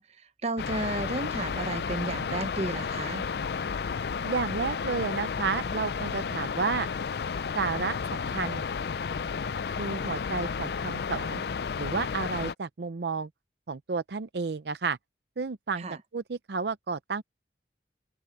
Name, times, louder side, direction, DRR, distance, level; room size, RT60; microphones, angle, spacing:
voice 1, 0.0-3.2 15.8-16.0, right 2 dB, 35° right, 0.9 m, -33 dB
sound 1, 0.6-12.5, left 5 dB, 60° left, 0.4 m, -32 dB
voice 2, 4.2-6.9 7.6-8.6 9.8-11.4 11.8-13.3 13.7-15.0 15.4-15.8 16.1-17.2, right 4 dB, 65° right, 0.6 m, -31 dB
open air
head